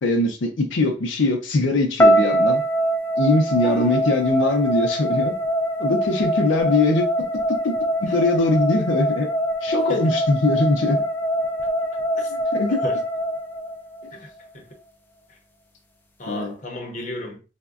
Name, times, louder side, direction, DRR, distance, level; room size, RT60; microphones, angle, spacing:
voice 1, 0.0-2.6 3.2-5.3 5.8-7.7 8.0-9.3 9.6-11.0 12.5-12.8 16.3-16.5, left 2 dB, 85° left, 0.5 m, -21 dB
sound 1, 2.0-14.1, right 1 dB, 10° left, 0.3 m, -23 dB
voice 2, 3.6-4.0 8.1-8.2 9.9-10.2 12.2-12.3 12.8-13.0 14.1-14.7 15.3-15.4 16.2-17.4, left 1 dB, 45° left, 0.7 m, -34 dB
3.5 x 2.1 x 2.3 m
head